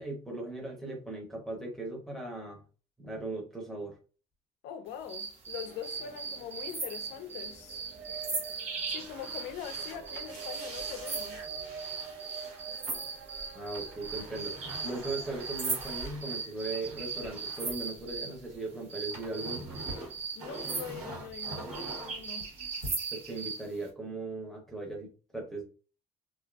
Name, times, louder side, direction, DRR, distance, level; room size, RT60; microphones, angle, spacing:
voice 1, 0.0-2.6 3.0-3.9 13.5-19.7 23.1-25.6, right 2 dB, ahead, 0.7 m, -38 dB
voice 2, 4.6-7.8 8.9-11.5 20.4-22.5, left 9 dB, 90° left, 0.4 m, -43 dB
sound 1, 5.1-18.4 18.9-23.7, right 4 dB, 40° right, 1.1 m, -38 dB
sound 2, 5.6-15.4, right 5 dB, 70° right, 0.6 m, -48 dB
sound 3, 8.7-18.5 18.8-22.9, right 1 dB, 90° right, 1.3 m, -46 dB
2.5 x 2.4 x 2.3 m
cardioid pair, 110°, 17 cm